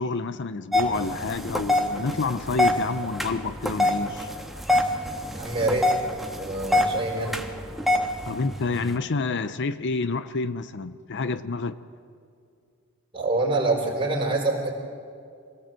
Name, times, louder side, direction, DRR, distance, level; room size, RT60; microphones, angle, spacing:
voice 1, 0.0-4.3 8.3-11.8, left 3 dB, 55° left, 0.6 m, -28 dB
sound 1, 0.7-9.0, left 1 dB, ahead, 1.4 m, -26 dB
voice 2, 5.3-5.9 6.4-7.4 13.1-14.7, right 2 dB, 25° right, 4.3 m, -25 dB
26.0 x 18.0 x 7.7 m
head